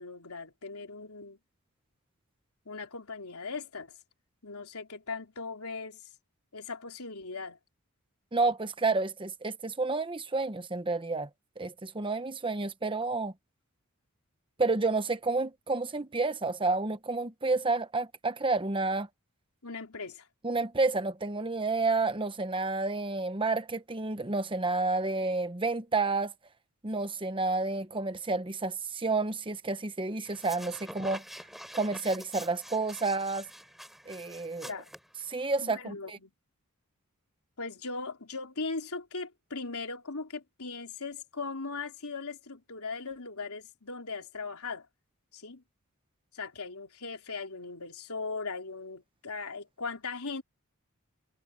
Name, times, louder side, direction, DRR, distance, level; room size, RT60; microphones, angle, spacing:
voice 1, 0.0-1.4 2.7-3.9 4.4-6.0 6.5-7.6 19.6-20.3 34.7-34.9 35.6-36.3 37.6-44.9 45.3-45.6 46.3-50.4, left 4 dB, 85° left, 3.5 m, -39 dB
voice 2, 8.3-11.3 11.6-13.3 14.6-19.1 20.4-26.3 26.8-31.2 31.7-33.5 34.1-34.7 35.3-36.2, right 3 dB, 25° right, 1.0 m, -30 dB
sound 1, 30.3-35.6, equal, ahead, 4.1 m, -46 dB
head